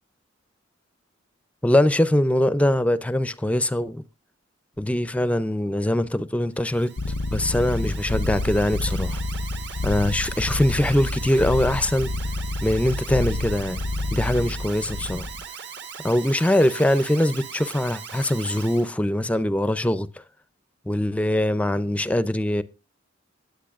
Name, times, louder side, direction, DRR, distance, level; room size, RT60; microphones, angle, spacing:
voice 1, 1.6-4.0 4.8-6.9 7.3-9.2 9.8-12.1 12.6-13.8 14.1-15.3 16.0-20.1 20.9-22.6, left 1 dB, 5° left, 0.4 m, -22 dB
Alarm, 6.5-18.9, right 7 dB, 60° right, 1.3 m, -39 dB
sound 1, 7.0-15.4, left 2 dB, 80° left, 0.6 m, -29 dB
19.0 x 8.2 x 2.4 m
head